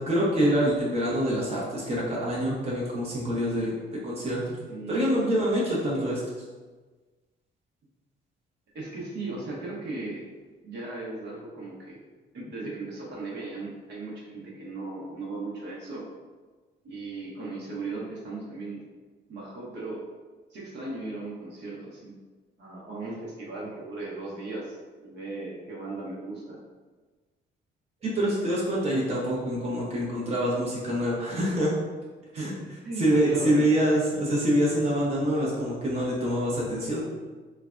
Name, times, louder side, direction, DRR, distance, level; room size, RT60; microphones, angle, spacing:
voice 1, 0.0-4.6 4.9-6.2 28.0-31.7 32.3-32.5 33.0-37.0, equal, 30° right, -5 dB, 0.8 m, -26 dB
voice 2, 4.7-5.6 8.7-10.2 10.6-12.0 12.3-16.1 16.8-18.8 19.3-20.0 20.5-22.1 22.6-24.8 25.0-26.6 32.4-32.6 32.8-33.6, right 2 dB, 60° right, -5 dB, 0.9 m, -37 dB
3.2 x 2.2 x 2.4 m, 1.3 s
cardioid pair, 90°, 20 cm